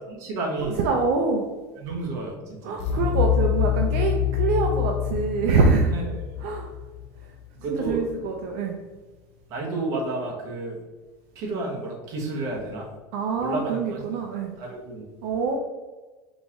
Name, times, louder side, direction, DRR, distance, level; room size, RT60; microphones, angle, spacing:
voice 1, 0.1-0.8 1.8-2.8 5.9-6.4 7.6-8.0 9.5-10.8 11.3-12.9 13.4-14.1 14.6-15.0, right 2 dB, 40° right, -1 dB, 1.0 m, -31 dB
voice 2, 0.6-1.5 2.6-5.9 6.4-6.7 7.7-8.8 13.1-14.5 15.2-15.6, right 4 dB, 65° right, 2 dB, 0.5 m, -24 dB
sound 1, 2.8-7.7, left 11 dB, 80° left, 0.4 m, -26 dB
3.9 x 2.9 x 3.6 m, 1.3 s
cardioid pair, 175°, 8 cm